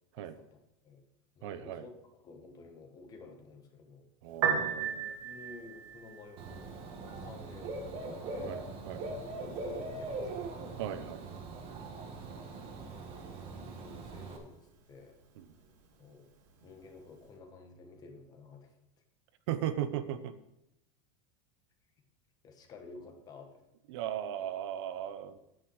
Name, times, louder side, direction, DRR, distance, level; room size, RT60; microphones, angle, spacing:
voice 1, 0.2-1.1 1.3-4.1 5.2-6.7 7.0-8.6 9.2-10.5 12.9-15.2 16.0-16.3 16.6-18.7 22.4-23.6, left 3 dB, 25° left, 5 dB, 1.4 m, -52 dB
voice 2, 1.4-1.8 4.2-5.2 8.5-9.0 10.8-11.3 15.4-15.5 19.5-20.3 23.9-25.4, right 10 dB, 60° right, 12 dB, 0.8 m, -37 dB
Piano, 4.3-17.3, right 7 dB, 90° right, 2.3 m, -41 dB
Dog / Bird, 6.4-14.4, right 2 dB, 35° right, 1.6 m, -41 dB
9.8 x 9.1 x 4.7 m, 0.84 s
supercardioid pair, 165°, 16 cm